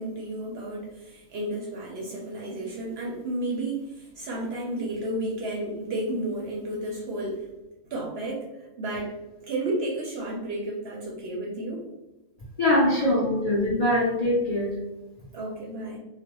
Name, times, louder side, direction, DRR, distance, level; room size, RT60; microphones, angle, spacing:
voice 1, 0.0-7.5 7.9-11.8 13.0-13.1 15.3-16.0, right 1 dB, 65° right, -2 dB, 0.7 m, -32 dB
voice 2, 12.6-14.8, left 1 dB, 55° left, -6 dB, 0.4 m, -23 dB
2.4 x 2.1 x 2.9 m, 1.0 s
omnidirectional pair, 1.4 m